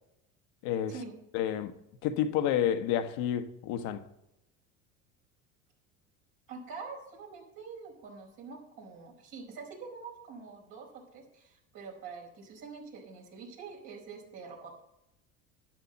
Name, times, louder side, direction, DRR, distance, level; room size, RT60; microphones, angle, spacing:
voice 1, 0.6-0.9 1.3-1.7 2.0-4.0, left 10 dB, 65° left, 1.3 m, -29 dB
voice 2, 6.5-14.7, right 5 dB, 60° right, 4.9 m, -45 dB
12.0 x 10.5 x 4.1 m
hypercardioid pair, 85°, 40 cm